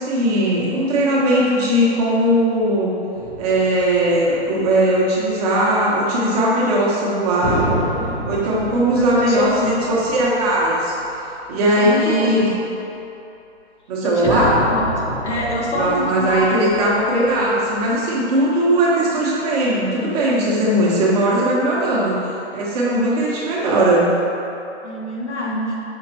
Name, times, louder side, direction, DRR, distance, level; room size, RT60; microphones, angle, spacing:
voice 1, 0.0-2.9 3.4-7.7 8.3-10.9 11.5-12.5 13.9-14.5 15.7-24.1, right 1 dB, 35° right, -5 dB, 1.3 m, -19 dB
sound 1, 3.2-5.1 7.4-11.2 11.5-11.6 14.2-17.9, equal, 15° left, 0.9 m, -29 dB
voice 2, 8.7-9.8 11.6-12.4 14.0-14.9 15.2-16.7 24.8-25.7, left 2 dB, 80° left, -3 dB, 1.3 m, -24 dB
5.9 x 5.8 x 2.8 m, 2.9 s
figure-of-eight pair, 125°, 34 cm